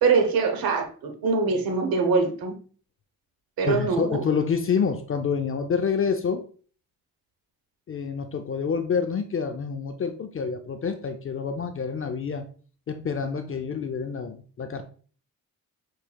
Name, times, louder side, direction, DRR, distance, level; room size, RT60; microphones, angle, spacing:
voice 1, 0.0-2.5 3.6-4.2, right 4 dB, 90° right, 5 dB, 0.9 m, -23 dB
voice 2, 3.6-6.4 7.9-12.4 12.9-14.8, left 6 dB, 40° left, 7 dB, 0.5 m, -27 dB
5.6 x 3.2 x 2.2 m, 0.41 s
cardioid pair, 80°, 35 cm